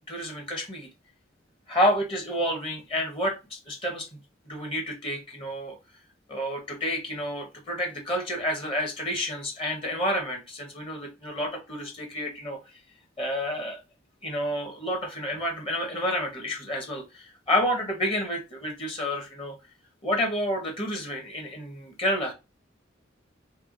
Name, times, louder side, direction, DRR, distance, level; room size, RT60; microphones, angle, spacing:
voice 1, 0.1-0.9 1.7-4.2 4.4-5.8 6.3-12.6 13.2-13.8 14.2-19.6 20.0-22.3, equal, 30° left, 1.3 m, -29 dB
3.5 x 3.3 x 4.0 m
head